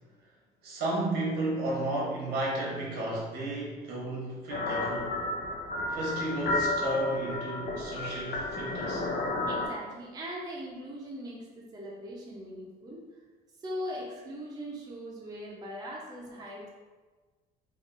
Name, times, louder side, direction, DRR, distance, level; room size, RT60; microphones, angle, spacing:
voice 1, 0.6-5.1 5.9-9.0, right 1 dB, 80° right, -4 dB, 1.0 m, -33 dB
sound 1, 4.5-9.7, left 2 dB, 65° left, 0.5 m, -32 dB
voice 2, 9.5-13.0 13.6-16.7, equal, 20° right, -4 dB, 0.6 m, -40 dB
3.0 x 2.5 x 2.5 m, 1.3 s
cardioid pair, 110°, 17 cm